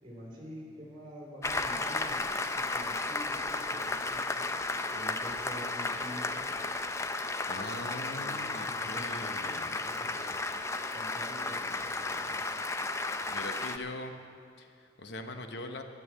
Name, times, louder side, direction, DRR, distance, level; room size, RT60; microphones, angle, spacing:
voice 1, 0.0-2.2 2.5-6.4 7.5-10.4 10.9-12.5, equal, 25° right, -3 dB, 3.6 m, -47 dB
Applause, 1.4-13.8, left 3 dB, 15° left, 0.4 m, -34 dB
voice 2, 7.5-9.7 13.3-14.1 14.6-15.8, left 2 dB, 65° left, 6 dB, 0.8 m, -41 dB
11.0 x 10.5 x 7.5 m, 2.6 s
head